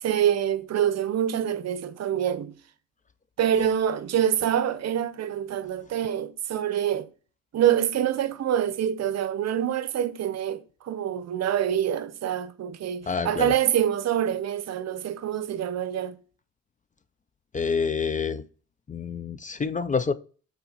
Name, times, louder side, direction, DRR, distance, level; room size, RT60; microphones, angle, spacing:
voice 1, 0.0-2.5 3.4-7.1 7.5-16.2, right 10 dB, 60° right, 0.7 m, -26 dB
voice 2, 13.1-13.5 17.5-18.4 18.9-20.1, left 5 dB, 25° left, 0.5 m, -27 dB
5.6 x 4.2 x 5.7 m
cardioid pair, 90°, 30 cm